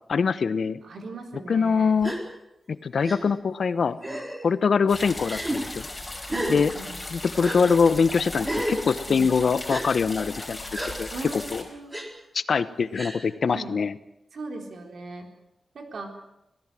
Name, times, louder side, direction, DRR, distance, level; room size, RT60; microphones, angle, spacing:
voice 1, 0.1-0.8 1.5-2.1 2.7-4.0 4.4-5.9 6.5-6.7 7.1-10.6 11.0-11.6 12.3-13.9, left 5 dB, 65° left, 14 dB, 1.0 m, -23 dB
voice 2, 0.8-2.0 6.3-6.9 9.1-9.3 11.1-12.0 13.5-13.8 14.3-15.3 15.7-16.2, right 3 dB, 70° right, 4 dB, 4.0 m, -38 dB
Gasp, 2.0-2.2 3.0-3.2 4.0-4.4 5.2-5.6 6.3-6.6 7.4-7.6 8.4-8.8 9.7-9.8 10.7-10.9 11.9-12.1 12.9-13.2, right 1 dB, 15° right, 4.0 m, -30 dB
sound 1, 4.9-11.6, left 2 dB, 20° left, 5.1 m, -37 dB
26.5 x 17.5 x 7.6 m, 0.84 s
wide cardioid pair, 140°, 0 cm